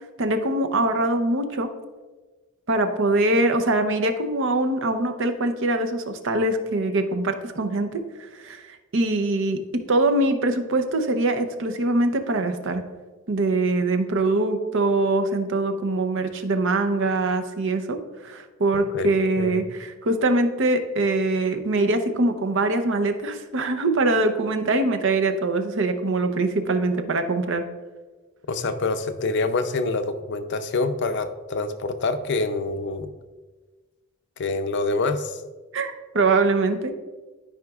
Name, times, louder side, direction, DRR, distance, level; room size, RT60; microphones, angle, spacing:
voice 1, 0.2-1.7 2.7-12.8 13.3-27.6 35.7-36.9, right 2 dB, 60° right, 6 dB, 0.7 m, -23 dB
voice 2, 18.9-19.6 28.5-33.1 34.4-35.4, left 3 dB, 55° left, 9 dB, 0.5 m, -26 dB
12.5 x 5.0 x 2.4 m, 1.3 s
head